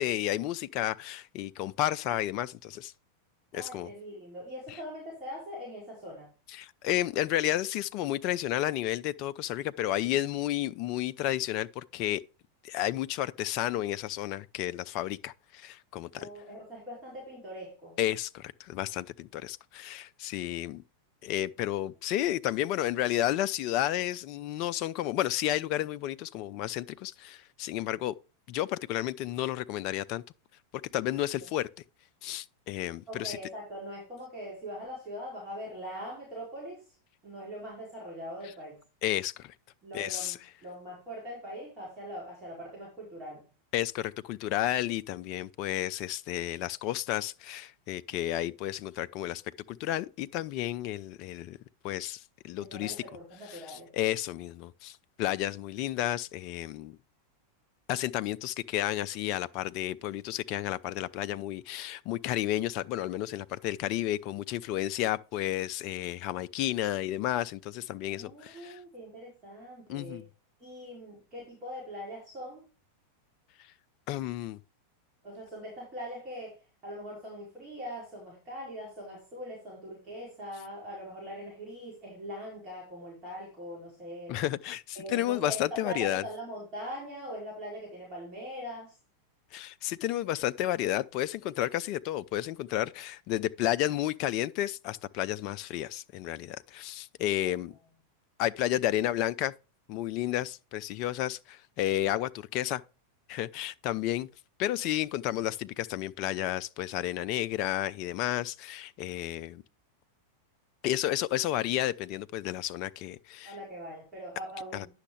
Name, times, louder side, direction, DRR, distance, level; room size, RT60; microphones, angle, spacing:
voice 1, 0.0-2.9 3.5-3.9 6.5-12.2 12.6-16.3 18.0-20.8 21.2-28.1 28.5-30.2 30.9-31.7 32.2-33.4 39.0-39.5 39.9-40.3 43.7-49.4 49.7-51.6 51.8-53.0 53.5-57.0 57.9-68.8 69.9-70.2 74.1-74.6 84.3-86.2 89.5-97.7 98.4-99.5 99.9-102.8 103.3-104.3 104.6-109.6 110.8-113.6 114.7-114.9, left 13 dB, 40° left, 0.4 m, -32 dB
voice 2, 3.5-6.3 16.1-18.0 31.4-31.5 33.1-36.9 37.2-38.8 39.8-43.4 52.6-53.9 68.0-70.2 70.6-72.6 75.2-84.4 84.9-89.0 97.4-97.5 113.4-114.9, equal, 30° right, 4.6 m, -42 dB
9.7 x 6.4 x 3.2 m
figure-of-eight pair, 90°, 0 cm